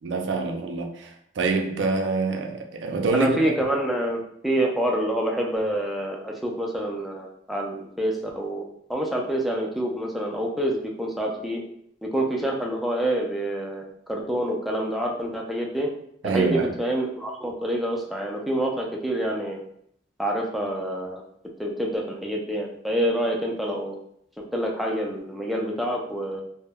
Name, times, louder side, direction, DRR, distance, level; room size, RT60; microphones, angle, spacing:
voice 1, 0.0-3.4 16.2-16.7, right 3 dB, 80° right, 4 dB, 0.4 m, -25 dB
voice 2, 3.1-8.6 8.9-11.6 12.0-15.9 16.2-19.6 20.2-21.2 21.6-24.0 24.5-26.4, right 1 dB, ahead, -1 dB, 0.3 m, -27 dB
2.1 x 2.0 x 3.4 m, 0.70 s
head